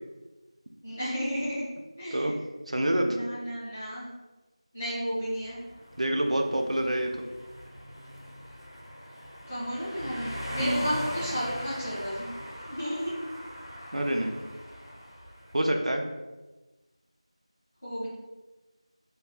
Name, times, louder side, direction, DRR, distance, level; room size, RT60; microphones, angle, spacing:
voice 1, 0.8-1.7 2.0-2.4 2.9-4.1 4.7-5.6 9.5-12.3 12.7-13.2 17.8-18.1, equal, 10° left, -12 dB, 0.5 m, -33 dB
voice 2, 2.7-3.1 6.0-7.2 10.6-10.8 13.9-14.3 15.5-16.0, right 1 dB, 85° right, 3 dB, 0.5 m, -27 dB
sound 1, 5.4-15.7, equal, 45° left, 0.7 m, -40 dB
2.3 x 2.2 x 3.6 m, 1.1 s
figure-of-eight pair, 180°, 3 cm